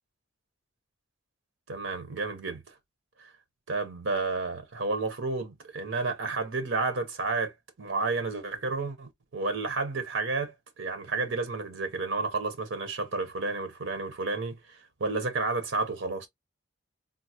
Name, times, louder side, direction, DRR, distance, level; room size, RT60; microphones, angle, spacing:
voice 1, 1.7-2.7 3.2-3.3 3.7-7.5 7.8-16.3, right 3 dB, 80° right, 0.8 m, -31 dB
3.8 x 2.0 x 2.8 m
head